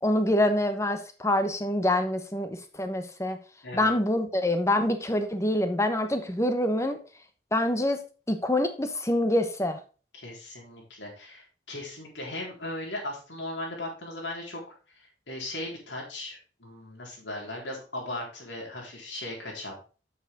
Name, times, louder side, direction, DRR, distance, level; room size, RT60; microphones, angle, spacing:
voice 1, 0.0-3.4 3.7-7.0 7.5-8.0 8.3-9.8, left 1 dB, 15° left, 8 dB, 1.1 m, -26 dB
voice 2, 3.6-3.9 10.1-19.7, left 1 dB, 90° left, -1 dB, 4.0 m, -38 dB
8.0 x 6.9 x 3.7 m, 0.35 s
head